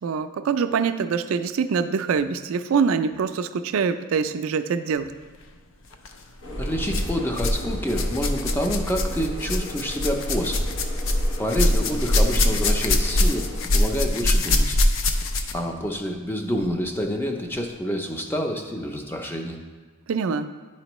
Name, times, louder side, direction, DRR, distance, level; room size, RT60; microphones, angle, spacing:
voice 1, 0.0-5.1 20.1-20.5, right 6 dB, 75° right, 11 dB, 0.4 m, -24 dB
sound 1, 5.9-6.1 6.9-7.6 7.9-15.7 16.6-16.7 17.5-17.6, left 1 dB, 65° left, 0.5 m, -23 dB
sound 2, 6.4-13.6, equal, 85° left, 1.0 m, -34 dB
voice 2, 6.6-10.7 11.4-13.5 13.7-14.8 15.5-19.6, equal, 10° left, 3 dB, 0.5 m, -28 dB
10.5 x 4.3 x 3.0 m, 1.4 s
head